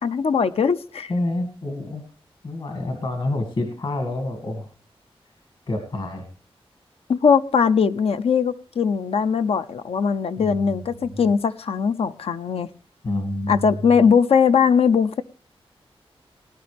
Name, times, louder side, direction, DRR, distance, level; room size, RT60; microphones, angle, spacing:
voice 1, 0.0-1.1 7.1-12.7 13.5-15.2, left 6 dB, 75° left, 0.6 m, -20 dB
voice 2, 1.1-2.0 2.4-4.7 5.7-6.2 10.4-11.2 13.0-13.7, left 2 dB, 55° left, 2.1 m, -28 dB
19.5 x 11.0 x 3.4 m
wide cardioid pair, 165°, 10 cm